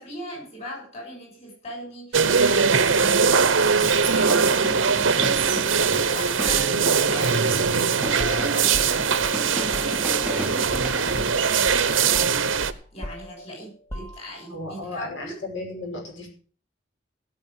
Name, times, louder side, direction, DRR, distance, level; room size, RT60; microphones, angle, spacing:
voice 1, 0.0-3.8 4.0-7.8 8.2-15.4, equal, 30° left, 0 dB, 6.8 m, -39 dB
sound 1, 2.1-12.7, right 5 dB, 90° right, 1.0 m, -21 dB
Drum kit, 3.8-11.3, right 1 dB, 5° right, 0.7 m, -35 dB
sound 2, 6.5-10.9 11.2-11.4 11.7-14.6, right 1 dB, 10° left, 2.0 m, -39 dB
voice 2, 14.5-16.3, left 2 dB, 75° left, 2 dB, 5.5 m, -34 dB
16.5 x 6.5 x 7.5 m, 0.43 s
head